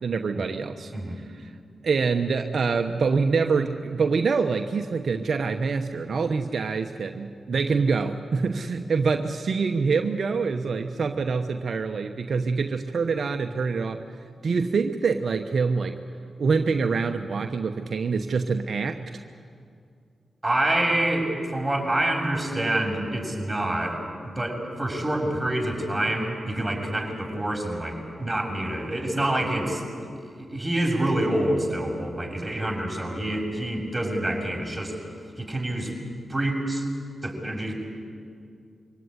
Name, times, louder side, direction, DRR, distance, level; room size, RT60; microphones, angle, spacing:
voice 1, 0.0-0.9 1.4-1.5 1.8-14.0 14.4-16.0 16.4-19.0, right 4 dB, 65° right, 6 dB, 1.0 m, -25 dB
voice 2, 20.4-30.1 30.4-35.0 35.4-35.9 36.3-36.8 37.2-37.7, right 1 dB, 15° right, 0 dB, 6.7 m, -27 dB
24.0 x 17.5 x 9.8 m, 2.3 s
supercardioid pair, 40°, 0 cm